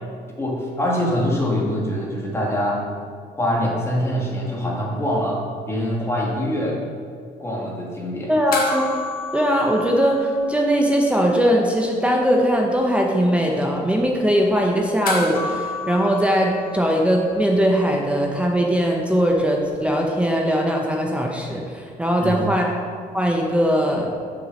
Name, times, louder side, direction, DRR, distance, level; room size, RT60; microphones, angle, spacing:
voice 1, 0.4-2.8 3.4-5.4 5.7-6.8 7.4-8.3 22.2-22.4, equal, 15° left, -3 dB, 1.8 m, -24 dB
voice 2, 8.3-8.8 9.3-22.8 23.1-24.1, equal, 5° right, 0 dB, 0.8 m, -20 dB
sound 1, 8.5-11.2 11.4-11.5 15.1-17.7 19.8-19.9, left 3 dB, 60° left, 1.5 m, -31 dB
6.2 x 4.6 x 6.5 m, 2.1 s
cardioid pair, 110°, 17 cm